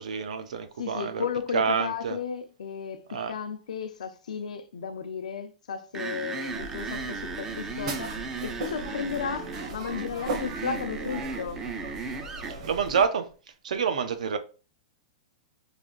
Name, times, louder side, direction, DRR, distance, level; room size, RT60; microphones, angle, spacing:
voice 1, 0.0-1.3 1.5-2.2 3.1-3.3 12.5-13.3 13.6-14.4, right 6 dB, 85° right, 0.6 m, -27 dB
voice 2, 0.8-11.7, left 7 dB, 90° left, 0.5 m, -34 dB
sound 1, 5.9-12.6, right 4 dB, 10° right, 0.4 m, -36 dB
sound 2, 6.5-13.1, right 3 dB, 55° right, 0.9 m, -38 dB
3.3 x 2.5 x 3.7 m
hypercardioid pair, 160°, 4 cm